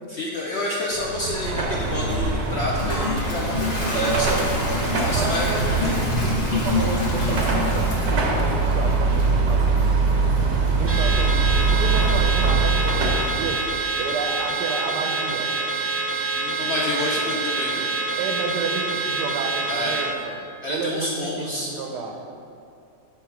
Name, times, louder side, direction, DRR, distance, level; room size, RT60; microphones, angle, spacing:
voice 1, 0.1-4.3 5.0-6.0 16.3-17.9 19.7-20.0 20.6-21.7, left 1 dB, 65° left, -3 dB, 0.6 m, -29 dB
Car passing by / Traffic noise roadway noise / Engine, 0.9-13.5, right 3 dB, 55° right, 0.8 m, -23 dB
Toilet flush, 2.1-14.9, left 3 dB, 35° left, 0.8 m, -31 dB
voice 2, 3.9-4.5 5.1-5.9 6.2-9.9 10.7-11.4 11.7-13.6 14.0-15.5 18.2-22.2, right 4 dB, 90° right, 3 dB, 1.3 m, -30 dB
Car / Alarm, 10.9-20.1, right 3 dB, 15° right, 0.5 m, -26 dB
6.9 x 4.7 x 4.5 m, 2.6 s
omnidirectional pair, 1.8 m